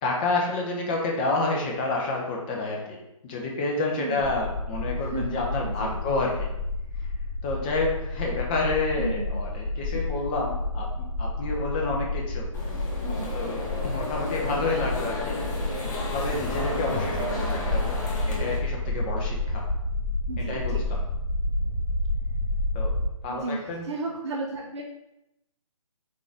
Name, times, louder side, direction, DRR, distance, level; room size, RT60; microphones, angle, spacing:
voice 1, 0.0-3.0 3.2-6.5 7.4-12.5 13.3-15.4 16.1-17.8 18.3-19.6 20.5-20.7 22.7-22.9 23.2-23.8, left 3 dB, 15° left, -1 dB, 0.6 m, -29 dB
voice 2, 4.0-4.3 5.0-6.0 9.0-9.4 9.9-10.0 13.0-13.3 20.3-20.8 23.3-24.8, right 3 dB, 55° right, -2 dB, 0.6 m, -34 dB
sound 1, 4.2-23.0, left 2 dB, 5° right, 1.2 m, -30 dB
sound 2, 12.5-18.6, left 2 dB, 35° left, 1.0 m, -33 dB
3.8 x 3.8 x 3.4 m, 0.87 s
hypercardioid pair, 155°, 17 cm